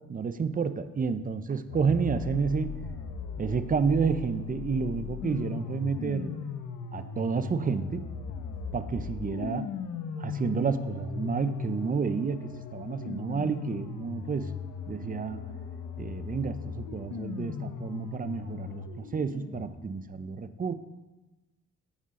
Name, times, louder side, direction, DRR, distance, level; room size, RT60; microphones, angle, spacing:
voice 1, 0.0-2.7 3.4-6.3 6.9-8.1 8.7-9.7 10.2-14.5 14.9-15.4 16.0-20.7, right 5 dB, 30° right, 12 dB, 0.6 m, -30 dB
sound 1, 1.7-19.7, left 6 dB, 80° left, 1.0 m, -38 dB
16.0 x 5.5 x 3.8 m, 1.2 s
cardioid pair, 90°, 30 cm